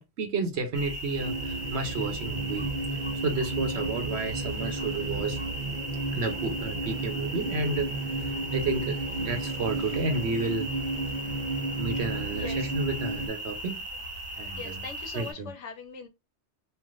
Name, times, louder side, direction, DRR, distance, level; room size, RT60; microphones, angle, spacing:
voice 1, 0.0-2.7 3.2-5.4 6.1-7.9 8.5-10.7 11.8-13.8 14.4-14.9 15.1-15.5, right 3 dB, 65° right, 1.1 m, -31 dB
sound 1, 0.7-15.3, right 1 dB, 25° right, 1.1 m, -38 dB
sound 2, 1.2-13.3, right 2 dB, 45° right, 0.8 m, -33 dB
voice 2, 12.3-12.6 14.6-16.1, left 4 dB, 80° left, 1.1 m, -40 dB
3.3 x 2.6 x 2.4 m
omnidirectional pair, 1.2 m